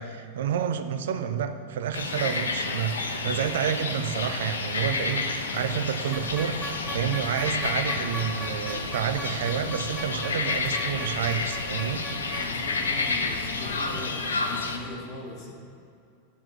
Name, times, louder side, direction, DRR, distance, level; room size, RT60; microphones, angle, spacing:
voice 1, 0.0-12.0, right 8 dB, 60° right, 9 dB, 0.5 m, -29 dB
sound 1, 1.9-14.8, left 4 dB, 70° left, 0.7 m, -30 dB
sound 2, 6.1-14.1, equal, 10° left, 1.2 m, -39 dB
voice 2, 12.4-15.5, left 2 dB, 35° left, -3 dB, 2.1 m, -40 dB
9.8 x 4.5 x 6.3 m, 2.5 s
figure-of-eight pair, 90°, 0 cm